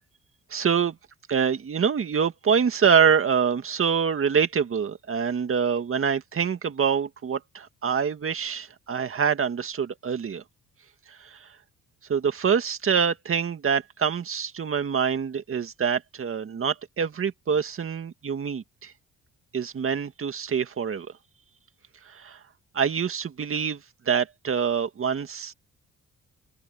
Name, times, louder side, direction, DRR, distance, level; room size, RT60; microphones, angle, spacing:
voice 1, 0.5-1.0 1.3-10.4 11.1-11.5 12.1-18.9 19.5-21.1 22.1-22.4 22.7-23.8 24.1-25.5, right 7 dB, 45° right, 2.1 m, -25 dB
open air
cardioid pair, 90°, 30 cm